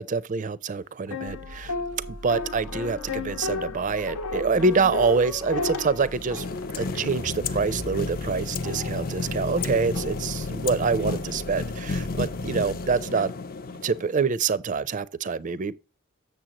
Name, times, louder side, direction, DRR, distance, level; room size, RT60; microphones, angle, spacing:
voice 1, 0.0-1.7 2.1-6.5 6.8-13.3 13.8-15.8, right 4 dB, 35° right, 0.4 m, -26 dB
sound 1, 1.1-7.5 8.0-8.1 8.6-11.2, left 3 dB, 90° left, 1.0 m, -34 dB
sound 2, 1.3-13.0, left 1 dB, 65° left, 0.8 m, -42 dB
sound 3, 6.0-14.3, left 3 dB, 40° left, 0.5 m, -32 dB
7.6 x 6.9 x 2.9 m
head